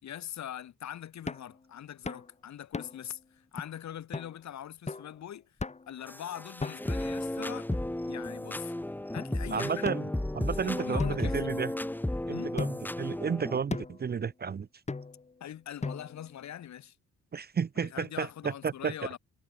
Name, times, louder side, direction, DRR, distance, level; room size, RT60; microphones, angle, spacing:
voice 1, 0.0-5.5 5.9-7.7 8.1-8.7 9.1-10.0 10.4-11.4 12.3-12.6 15.4-17.0 17.8-19.2, left 10 dB, 65° left, 3.3 m, -42 dB
sound 1, 1.3-1.5 2.1-2.3 2.7-3.1 3.6-3.7 4.1-4.3 4.9-5.1 5.6-6.0 6.6-7.1 7.7-8.4 9.2-9.3 9.8-10.5 11.0-12.0 12.6-13.0 13.7-14.1 14.9-15.3 15.8-16.3, left 4 dB, 20° left, 2.1 m, -38 dB
sound 2, 6.1-13.6, left 1 dB, 5° left, 1.4 m, -34 dB
voice 2, 9.5-10.0 10.3-11.7 12.3-14.7 17.3-18.9, right 6 dB, 30° right, 0.8 m, -32 dB
cardioid pair, 90°, 30 cm